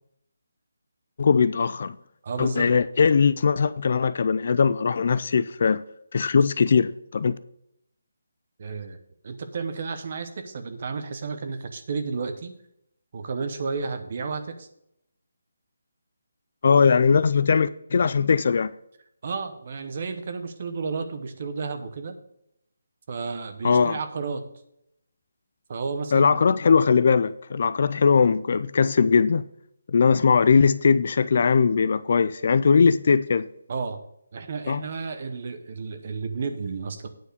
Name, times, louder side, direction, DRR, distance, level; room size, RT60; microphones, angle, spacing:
voice 1, 1.2-2.0 2.4-5.8 6.1-7.4 16.6-18.7 23.6-24.0 26.1-29.4 29.9-33.5 34.7-34.8, left 5 dB, 40° left, 0.3 m, -20 dB
voice 2, 2.2-2.7 8.6-9.0 9.2-12.5 13.1-14.7 19.2-22.2 23.1-24.4 25.7-26.4 33.7-34.0 34.3-37.1, right 4 dB, 35° right, 0.8 m, -32 dB
9.1 x 4.8 x 6.6 m
hypercardioid pair, 175°, 0 cm